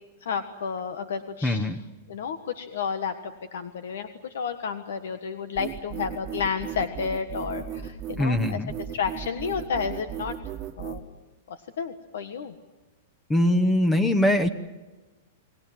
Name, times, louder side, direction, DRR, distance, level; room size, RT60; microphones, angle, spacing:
voice 1, 0.2-1.8 2.1-10.3 10.8-11.0 11.5-12.5, left 6 dB, 85° left, 9 dB, 1.5 m, -31 dB
voice 2, 1.4-1.8 8.2-8.7 13.3-14.5, left 1 dB, 10° left, 12 dB, 1.0 m, -22 dB
sound 1, 5.6-11.0, right 10 dB, 25° right, 1.4 m, -36 dB
29.5 x 20.0 x 7.6 m, 1.2 s
supercardioid pair, 160°, 0 cm